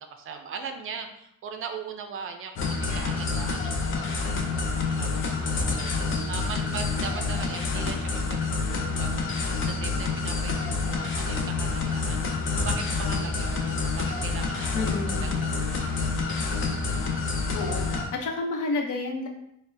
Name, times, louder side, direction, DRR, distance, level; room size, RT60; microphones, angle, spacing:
voice 1, 0.0-9.2 9.7-14.9 15.2-16.5, right 6 dB, 45° right, 5 dB, 0.4 m, -40 dB
sound 1, 2.6-18.1, left 4 dB, 40° left, 0.5 m, -28 dB
sound 2, 2.9-4.2, right 1 dB, 25° right, 0.8 m, -47 dB
voice 2, 14.7-15.4 17.5-19.3, left 3 dB, 75° left, 2 dB, 0.8 m, -30 dB
5.8 x 2.1 x 2.6 m, 0.77 s
cardioid pair, 165°, 31 cm